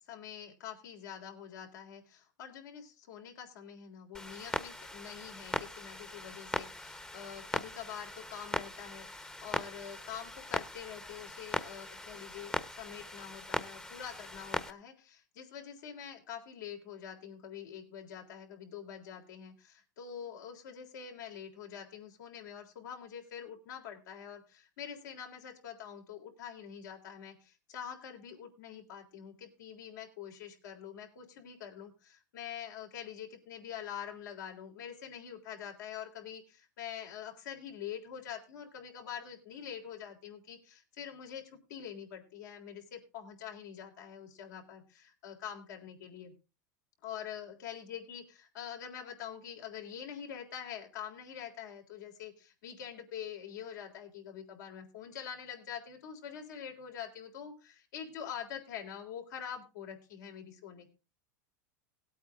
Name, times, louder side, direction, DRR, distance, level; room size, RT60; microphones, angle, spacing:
voice 1, 0.1-46.3 47.0-60.9, left 8 dB, 75° left, 2 dB, 3.6 m, -45 dB
Clock, 4.1-14.7, left 1 dB, 10° left, 1.0 m, -40 dB
17.5 x 8.6 x 3.6 m, 0.31 s
hypercardioid pair, 105°, 10 cm